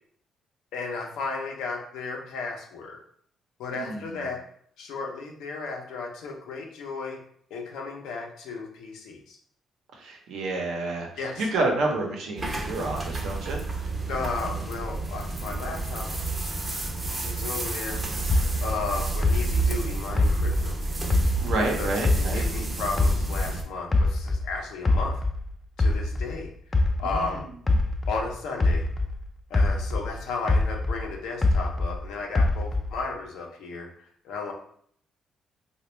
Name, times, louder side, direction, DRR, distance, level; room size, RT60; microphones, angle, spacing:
voice 1, 0.7-3.0 3.6-4.4 4.8-7.2 7.5-9.4 11.2-11.5 14.1-16.1 17.2-18.0 18.6-20.8 21.6-22.0 22.3-25.1 25.8-26.5 26.9-27.4 28.1-28.9 29.5-33.9 34.2-34.5, left 4 dB, 85° left, 1 dB, 0.6 m, -34 dB
voice 2, 3.7-4.3 10.0-11.1 11.4-13.6 21.4-22.4 27.0-27.3, right 2 dB, 80° right, 0 dB, 0.8 m, -29 dB
sound 1, 12.4-23.6, right 3 dB, 25° right, 0.7 m, -30 dB
sound 2, 18.3-21.7 22.0-24.5 24.9-29.2 29.5-32.0 32.4-33.1, left 2 dB, 25° left, 0.4 m, -24 dB
3.3 x 2.3 x 3.0 m, 0.62 s
cardioid pair, 90°, 0 cm